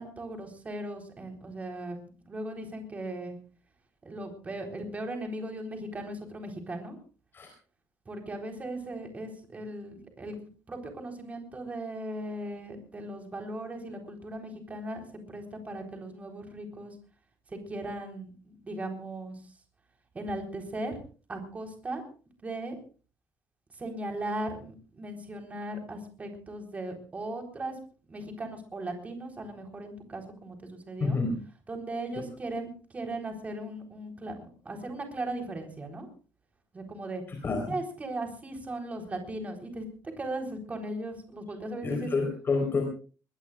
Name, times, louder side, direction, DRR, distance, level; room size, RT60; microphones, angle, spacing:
voice 1, 0.0-3.4 4.0-7.0 8.1-16.9 17.5-19.4 20.1-21.0 21.3-22.0 22.4-22.8 23.8-27.8 28.1-31.2 31.7-36.1 36.7-37.2 37.7-39.9 40.2-42.1, right 1 dB, 20° right, 3 dB, 4.0 m, -38 dB
voice 2, 31.0-31.4 37.3-37.7 41.8-42.8, left 3 dB, 30° left, 3 dB, 4.2 m, -28 dB
22.0 x 21.5 x 2.5 m, 0.38 s
cardioid pair, 170°, 7 cm